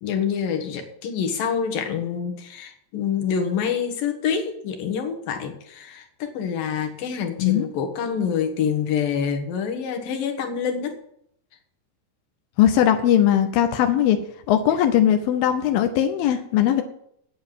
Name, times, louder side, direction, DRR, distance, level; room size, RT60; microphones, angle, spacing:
voice 1, 0.0-11.0, left 7 dB, 65° left, 5 dB, 2.7 m, -26 dB
voice 2, 12.6-14.2 14.5-16.8, left 10 dB, 80° left, 6 dB, 2.1 m, -19 dB
9.4 x 8.5 x 7.4 m, 0.72 s
omnidirectional pair, 5.0 m